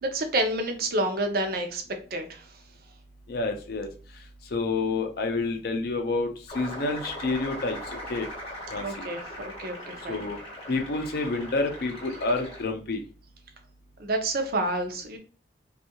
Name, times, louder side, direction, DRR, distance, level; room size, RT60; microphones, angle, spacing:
voice 1, 0.0-1.8 2.1-2.5 8.8-10.3 14.0-15.2, right 1 dB, 55° right, 5 dB, 0.5 m, -29 dB
voice 2, 3.3-3.9 4.5-7.8 8.1-8.3 8.7-9.1 10.1-10.4 10.7-13.0, left 3 dB, 55° left, 5 dB, 0.5 m, -28 dB
sound 1, 6.5-12.6, equal, 35° left, 0.8 m, -40 dB
2.6 x 2.3 x 2.8 m, 0.39 s
head